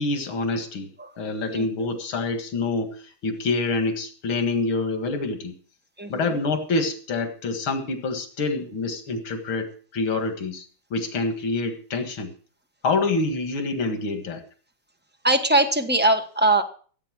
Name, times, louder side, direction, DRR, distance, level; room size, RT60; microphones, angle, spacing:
voice 1, 0.0-0.9 1.2-5.5 6.1-10.7 10.9-12.3 12.8-14.4, left 3 dB, 85° left, 7 dB, 2.6 m, -26 dB
voice 2, 6.0-6.4 15.2-16.6, right 2 dB, 10° right, 6 dB, 0.7 m, -21 dB
14.5 x 8.4 x 6.1 m, 0.43 s
omnidirectional pair, 2.2 m